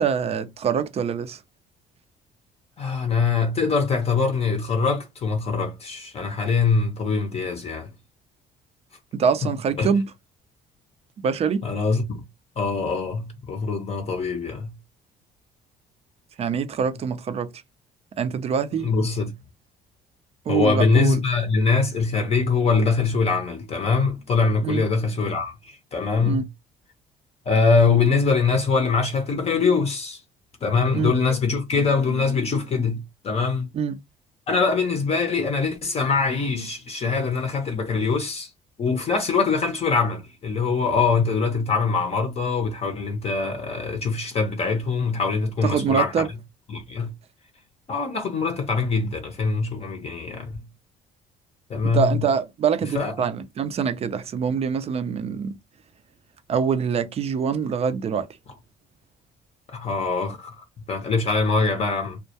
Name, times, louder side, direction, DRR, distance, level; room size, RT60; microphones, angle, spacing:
voice 1, 0.0-1.4 9.1-10.1 11.2-11.6 16.4-17.5 18.2-18.9 20.5-21.2 24.6-24.8 26.2-26.4 30.9-31.1 33.7-34.0 45.6-46.3 51.9-55.6 56.5-58.3, right 7 dB, 35° right, 0.4 m, -24 dB
voice 2, 2.8-7.9 9.8-9.9 11.6-12.2 12.6-14.7 18.8-19.3 20.5-26.5 27.5-30.2 30.6-33.7 34.5-38.5 38.8-46.1 46.7-47.1 47.9-50.6 51.7-52.3 52.9-53.1 59.7-62.2, left 4 dB, 40° left, 0.6 m, -23 dB
2.2 x 2.1 x 2.7 m
cardioid pair, 110°, 17 cm